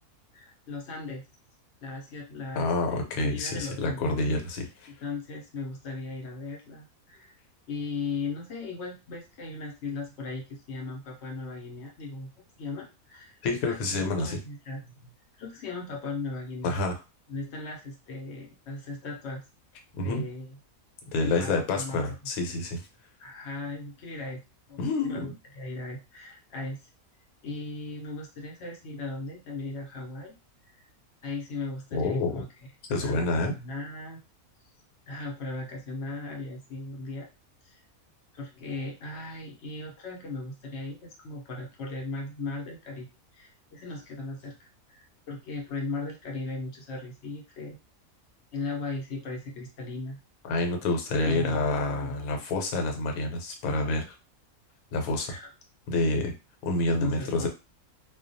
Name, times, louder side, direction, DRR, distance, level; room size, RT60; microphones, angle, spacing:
voice 1, 0.3-1.2 1.8-4.1 5.0-7.3 7.7-12.3 12.6-15.1 15.4-16.8 17.3-19.4 20.0-20.6 21.2-22.1 23.2-24.4 24.7-26.9 27.4-30.3 30.6-30.9 31.2-32.5 33.0-33.3 33.5-34.2 35.1-37.3 37.6-37.8 38.3-43.1 43.3-47.8 48.5-50.2 51.2-51.7 52.0-52.1 55.3-55.5 57.0-57.5, left 3 dB, 60° left, 0 dB, 0.8 m, -37 dB
voice 2, 2.5-4.9 13.4-14.4 16.6-17.0 20.0-20.2 21.1-22.8 24.8-25.3 31.9-32.4 32.9-33.5 50.4-54.1 54.9-55.3 55.9-56.3 56.6-57.5, left 2 dB, 75° left, 3 dB, 1.1 m, -28 dB
2.3 x 2.2 x 2.5 m, 0.29 s
omnidirectional pair, 1.5 m